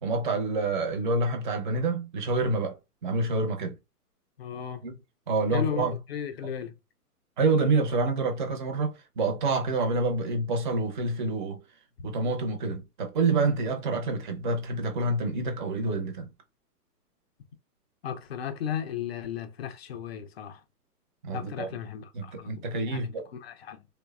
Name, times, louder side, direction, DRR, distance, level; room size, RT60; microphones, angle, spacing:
voice 1, 0.0-2.8 3.0-3.8 4.8-5.0 5.3-6.0 7.4-11.6 12.0-16.3 21.2-21.7 22.1-23.3, right 3 dB, 30° right, 0.6 m, -27 dB
voice 2, 4.4-4.9 5.5-6.8 12.0-12.1 18.0-20.6 21.3-23.9, left 8 dB, 45° left, 0.4 m, -35 dB
3.1 x 2.1 x 2.2 m
hypercardioid pair, 140°, 47 cm